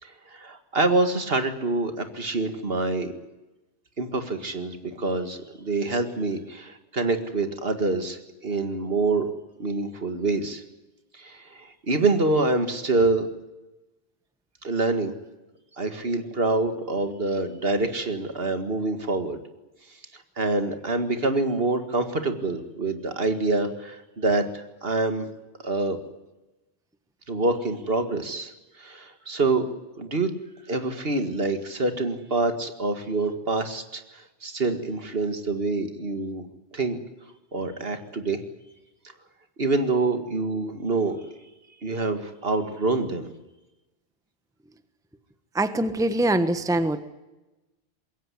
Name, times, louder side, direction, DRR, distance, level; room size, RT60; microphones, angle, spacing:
voice 1, 0.0-3.1 4.0-9.3 9.6-10.6 11.1-13.3 14.6-15.1 15.8-19.4 20.1-25.3 25.6-26.0 27.3-28.5 28.8-29.7 30.0-30.3 30.7-36.5 36.7-37.0 37.5-38.4 39.6-41.2 41.8-43.3, right 3 dB, 60° right, 8 dB, 2.2 m, -26 dB
voice 2, 45.5-47.0, right 1 dB, 5° right, 11 dB, 1.1 m, -23 dB
21.5 x 17.0 x 9.8 m, 1.0 s
omnidirectional pair, 1.1 m